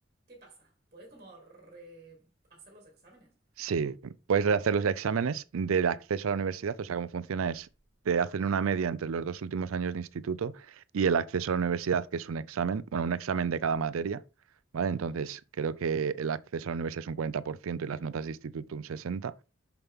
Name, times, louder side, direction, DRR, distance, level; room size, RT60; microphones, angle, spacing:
voice 1, 0.3-2.2 2.5-3.4, right 2 dB, 35° right, 1.7 m, -53 dB
voice 2, 3.6-7.7 8.1-14.2 14.7-19.3, right 6 dB, 90° right, 0.4 m, -30 dB
6.7 x 6.0 x 3.6 m
head